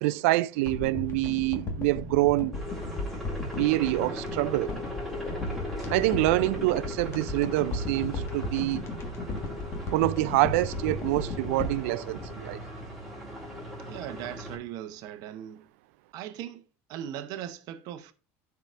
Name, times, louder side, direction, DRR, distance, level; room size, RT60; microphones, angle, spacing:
voice 1, 0.0-2.6 3.4-4.7 5.9-8.9 9.9-12.6, right 19 dB, 80° right, 0.4 m, -26 dB
sound 1, 0.6-13.1 13.4-13.5, left 2 dB, 35° left, 1.6 m, -36 dB
sound 2, 2.5-14.6, left 1 dB, ahead, 3.4 m, -39 dB
voice 2, 13.8-15.6 16.1-16.6 16.9-18.1, right 11 dB, 60° right, 0.8 m, -39 dB
12.5 x 4.8 x 2.5 m
supercardioid pair, 105°, 7 cm